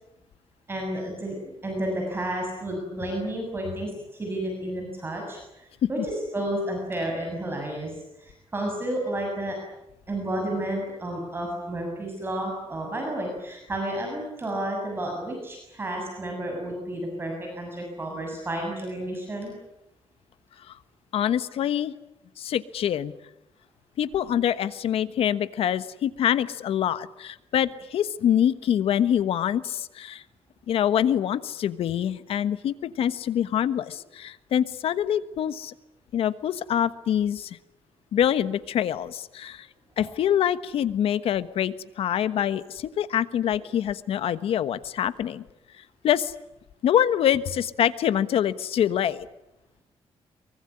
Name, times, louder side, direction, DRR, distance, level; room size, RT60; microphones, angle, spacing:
voice 1, 0.7-9.6 10.1-19.5 40.0-40.1, right 1 dB, 25° right, 1 dB, 7.1 m, -31 dB
voice 2, 21.1-21.9 22.4-23.1 24.0-30.2 30.7-35.7 36.1-37.6 38.1-39.7 40.0-45.4 46.0-46.3 46.8-49.2, left 10 dB, 80° left, 13 dB, 1.3 m, -25 dB
24.0 x 23.5 x 9.9 m, 0.89 s
cardioid pair, 140°, 10 cm